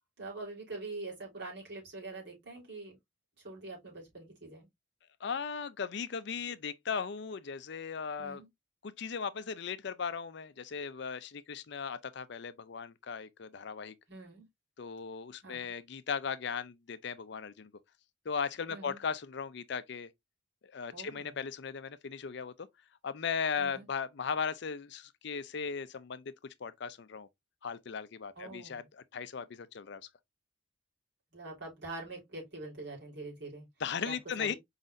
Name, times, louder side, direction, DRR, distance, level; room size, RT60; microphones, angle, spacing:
voice 1, 0.2-3.0 3.4-4.7 6.5-6.6 8.2-8.5 14.1-14.5 15.4-15.7 18.7-19.0 20.9-21.4 23.6-23.9 28.4-28.8 31.3-33.7 34.0-34.6, right 2 dB, 60° right, 3.5 m, -44 dB
voice 2, 5.2-8.4 8.8-13.9 14.8-17.7 18.3-20.1 20.7-22.7 23.0-26.2 26.6-27.3 27.6-28.8 29.1-30.0 33.8-34.5, left 6 dB, 60° left, 0.5 m, -37 dB
5.0 x 4.0 x 2.5 m
head